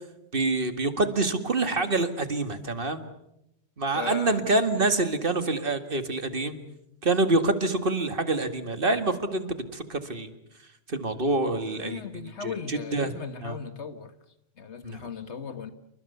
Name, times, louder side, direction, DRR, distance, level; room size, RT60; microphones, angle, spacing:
voice 1, 0.3-3.0 3.8-6.6 7.0-9.5 9.7-10.3 10.9-12.0 12.7-13.1 13.4-13.6 14.8-15.0, right 2 dB, 45° right, 2.2 m, -26 dB
voice 2, 3.9-4.5 4.7-4.9 11.8-14.1 14.6-15.7, left 6 dB, 65° left, 1.9 m, -37 dB
28.5 x 24.5 x 6.9 m
omnidirectional pair, 1.3 m